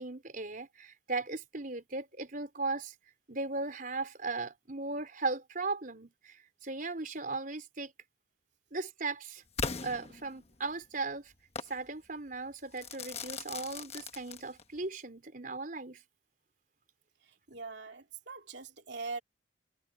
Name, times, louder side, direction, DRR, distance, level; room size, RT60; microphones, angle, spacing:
voice 1, 0.0-2.9 3.3-7.9 8.7-9.4 9.8-11.3 11.7-16.0, right 3 dB, 45° right, 4.4 m, -37 dB
Crackle / Fireworks, 9.6-10.7 11.6-11.8 12.8-14.8, left 4 dB, 35° left, 1.1 m, -39 dB
voice 2, 17.5-19.2, right 4 dB, 65° right, 3.1 m, -42 dB
head